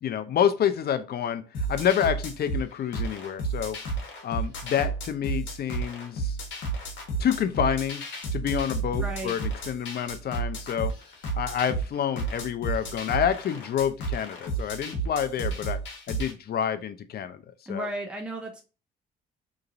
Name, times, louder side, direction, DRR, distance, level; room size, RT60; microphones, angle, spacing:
voice 1, 0.0-3.8 4.2-6.4 7.2-8.0 8.3-10.9 11.4-15.8 16.1-17.4 17.7-17.9, left 9 dB, 55° left, 10 dB, 0.5 m, -28 dB
sound 1, 1.5-16.3, right 3 dB, 70° left, 1.0 m, -32 dB
voice 2, 9.0-9.4 17.7-18.6, right 1 dB, 5° right, 2 dB, 0.6 m, -34 dB
2.9 x 2.5 x 2.4 m, 0.33 s
cardioid pair, 90°, 20 cm